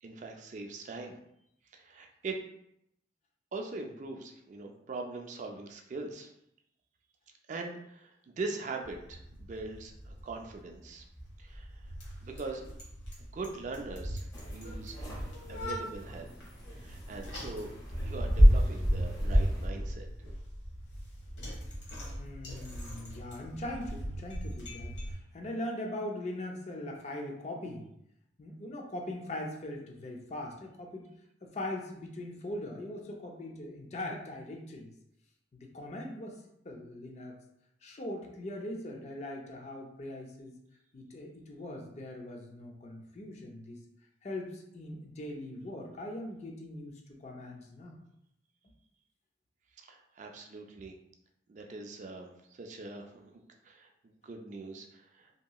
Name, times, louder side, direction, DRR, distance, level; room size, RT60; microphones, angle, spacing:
voice 1, 0.0-1.2 1.7-2.4 3.5-6.3 7.5-11.0 11.4-11.8 12.2-12.7 13.2-14.3 14.5-15.0 15.5-16.3 16.8-17.7 18.0-20.1 49.8-51.0 51.5-53.9 54.2-55.3, right 3 dB, 45° right, 3 dB, 0.4 m, -42 dB
Bicycle, 8.8-25.1, equal, 85° left, 1.0 m, -32 dB
sound 1, 14.3-19.7, equal, 20° left, 1.0 m, -50 dB
voice 2, 22.2-27.9 28.4-31.1 31.4-34.9 35.5-36.4 36.6-37.4 37.8-40.6 40.9-43.8 44.2-48.0, left 1 dB, 40° left, 1 dB, 0.5 m, -41 dB
2.8 x 2.8 x 2.3 m, 0.76 s
head